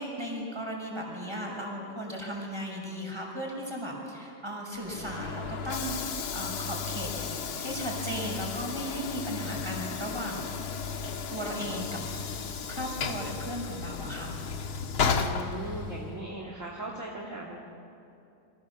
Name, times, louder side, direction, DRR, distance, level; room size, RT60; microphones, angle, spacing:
voice 1, 0.0-10.5 10.9-12.3 12.7-14.4, equal, 10° right, 0 dB, 5.9 m, -36 dB
Train / Sliding door, 4.8-16.2, left 6 dB, 80° left, 2.3 m, -34 dB
voice 2, 15.2-17.6, right 1 dB, 35° right, -3 dB, 2.9 m, -38 dB
29.0 x 25.0 x 7.2 m, 2.7 s
omnidirectional pair, 2.3 m